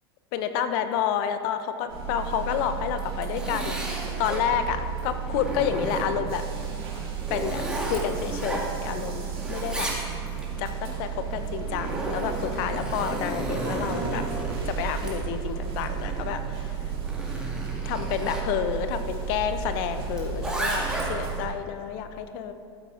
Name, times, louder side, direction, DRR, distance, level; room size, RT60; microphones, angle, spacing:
voice 1, 0.3-3.8 4.2-6.4 7.3-9.9 10.6-14.2 14.7-16.8 17.8-22.5, left 9 dB, 60° left, 10 dB, 0.8 m, -29 dB
sound 1, 1.9-21.4, right 7 dB, 75° right, 2.8 m, -33 dB
Zipper (clothing), 2.9-4.5 5.0-6.3 6.8-9.1 9.3-10.5 11.3-18.5 20.1-21.3, right 1 dB, 5° right, 2.3 m, -33 dB
13.0 x 8.5 x 3.8 m, 2.3 s
hypercardioid pair, 95°, 13 cm